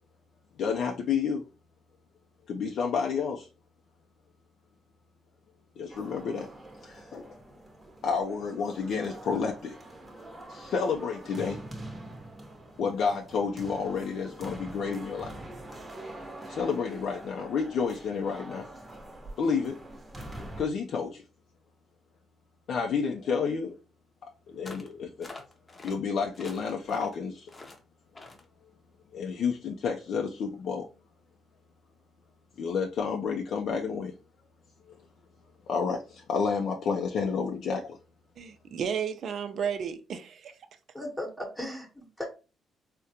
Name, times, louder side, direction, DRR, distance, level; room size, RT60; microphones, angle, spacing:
voice 1, 0.6-1.4 2.5-3.5 5.8-6.5 6.8-7.3 8.0-9.7 10.5-11.6 12.8-15.3 16.5-18.7 19.4-19.8 20.6-21.2 22.7-23.8 24.5-25.3 25.8-27.5 29.1-30.9 32.6-34.1 35.7-38.0, left 5 dB, 70° left, 0.4 m, -30 dB
sound 1, 5.9-20.7, right 1 dB, 20° right, 0.9 m, -45 dB
sound 2, 24.6-24.9 25.2-26.0 26.3-27.2 27.5-27.8 28.1-28.4, left 2 dB, 25° left, 0.7 m, -46 dB
voice 2, 38.4-40.5, right 7 dB, 60° right, 0.5 m, -33 dB
voice 3, 40.9-42.3, left 1 dB, 5° left, 1.0 m, -37 dB
3.7 x 2.1 x 2.8 m
cardioid pair, 90°, 0 cm